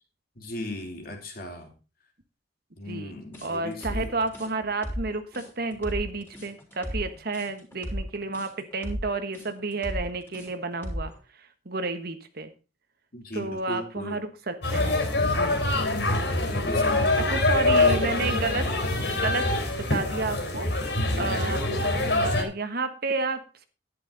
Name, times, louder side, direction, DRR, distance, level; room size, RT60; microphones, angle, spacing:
voice 1, 0.4-1.7 2.8-4.2 13.1-14.2 15.7-17.5 21.0-21.3, left 1 dB, 55° left, 3 dB, 3.2 m, -37 dB
sound 1, 3.3-11.2, equal, 10° left, 3.9 m, -35 dB
voice 2, 3.4-11.1 11.4-12.5 13.3-15.0 15.2-15.6 17.2-18.7 19.1-19.5 19.8-20.7 21.2-21.6 22.2-23.7, right 3 dB, 60° right, 9 dB, 1.4 m, -31 dB
sound 2, 14.6-22.4, left 2 dB, 70° left, 3.7 m, -24 dB
11.0 x 10.5 x 4.1 m, 0.32 s
head